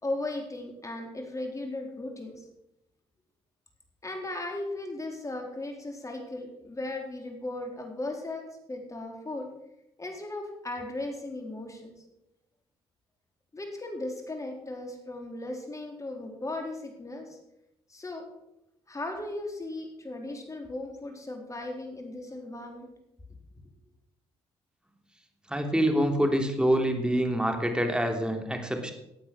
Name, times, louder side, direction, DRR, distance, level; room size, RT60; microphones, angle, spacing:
voice 1, 0.0-2.4 4.0-9.5 10.0-11.9 13.5-17.4 17.9-18.2 18.9-22.9, left 2 dB, 25° left, 3 dB, 4.1 m, -37 dB
voice 2, 25.5-28.9, equal, 5° right, 4 dB, 3.2 m, -26 dB
15.0 x 8.7 x 6.2 m, 0.85 s
supercardioid pair, 60°, 12 cm